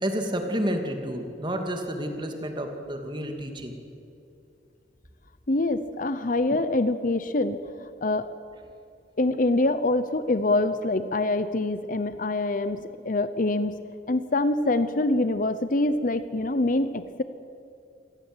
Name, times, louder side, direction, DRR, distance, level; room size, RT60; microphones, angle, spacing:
voice 1, 0.0-3.7, equal, 25° right, 4 dB, 2.5 m, -30 dB
voice 2, 5.5-8.3 9.2-13.8 14.1-17.2, left 2 dB, 50° left, 12 dB, 0.8 m, -25 dB
27.0 x 17.5 x 8.1 m, 2.6 s
head